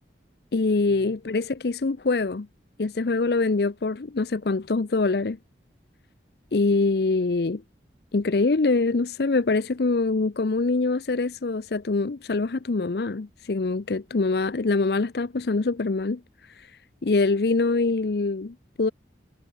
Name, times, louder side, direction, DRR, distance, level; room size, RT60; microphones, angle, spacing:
voice 1, 0.5-2.5 2.8-5.4 6.5-7.6 8.1-16.2 16.6-16.7 17.0-18.9, left 3 dB, 60° left, 0.6 m, -24 dB
head